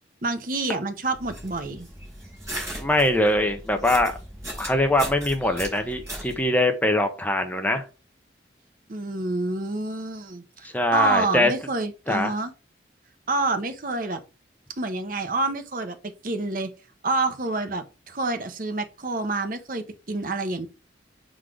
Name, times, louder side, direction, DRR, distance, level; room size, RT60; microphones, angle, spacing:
voice 1, 0.2-1.9 8.9-12.5 13.3-14.2 14.8-16.7 17.0-20.7, right 2 dB, 45° right, 0.8 m, -28 dB
sound 1, 1.1-6.4, right 1 dB, 15° right, 3.7 m, -37 dB
voice 2, 2.8-4.1 4.6-7.8 10.6-11.5 12.1-12.3, left 1 dB, 10° left, 0.7 m, -22 dB
6.4 x 3.9 x 4.7 m
head